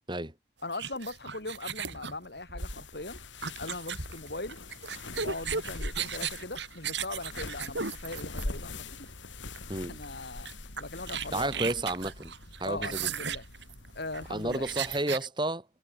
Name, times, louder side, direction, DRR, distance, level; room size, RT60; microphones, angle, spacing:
voice 1, 0.6-3.2 3.6-4.6 5.2-9.1 9.9-10.5 10.8-11.5 12.6-13.4 13.9-14.7, left 2 dB, 60° left, 3.3 m, -40 dB
sound 1, 0.7-8.8 9.6-9.8 10.0-10.1 10.5-15.3, right 6 dB, 70° right, 5.4 m, -36 dB
sound 2, 2.6-15.0, left 2 dB, 85° left, 3.0 m, -43 dB
voice 2, 11.3-12.3 12.6-13.1 14.3-15.7, right 1 dB, 25° right, 3.9 m, -31 dB
head